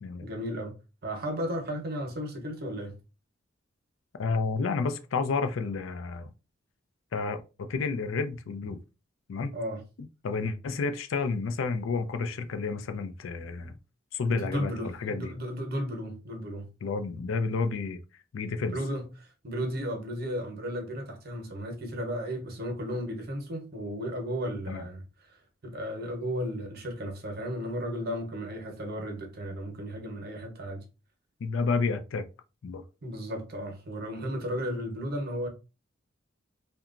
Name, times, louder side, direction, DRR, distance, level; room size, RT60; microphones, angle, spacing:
voice 1, 0.2-0.7 1.0-2.9 9.5-9.8 14.3-16.7 18.7-25.4 25.6-30.8 33.0-35.5, equal, 50° right, 0.8 m, -34 dB
voice 2, 4.2-6.3 7.1-8.8 9.3-9.5 10.2-13.7 14.1-14.7 15.0-15.3 16.8-18.0 18.3-18.7 24.7-24.8 31.4-32.2 32.6-32.8, left 4 dB, 80° left, 0.4 m, -30 dB
2.8 x 2.2 x 2.4 m
head